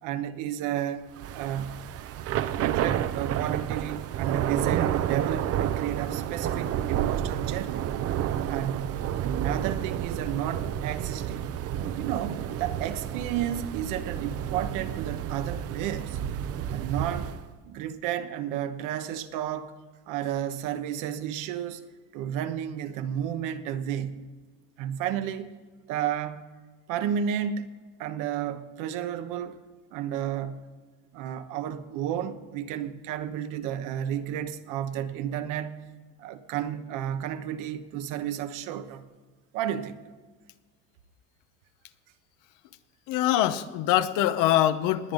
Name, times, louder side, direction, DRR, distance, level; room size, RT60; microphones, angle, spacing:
voice 1, 0.0-1.1 1.3-1.8 2.6-7.9 8.5-11.4 12.0-16.2 16.7-17.3 17.7-19.7 20.1-21.8 22.1-24.3 24.8-25.5 25.9-26.5 26.9-27.6 28.0-29.6 29.9-30.7 31.1-35.8 36.2-39.1 39.5-40.0, right 10 dB, 80° right, 1.1 m, -32 dB
Thunder / Rain, 1.1-17.5, right 10 dB, 50° right, 0.7 m, -30 dB
voice 2, 43.1-45.1, left 12 dB, 80° left, 1.0 m, -23 dB
20.5 x 9.1 x 3.9 m
cardioid pair, 135°, 31 cm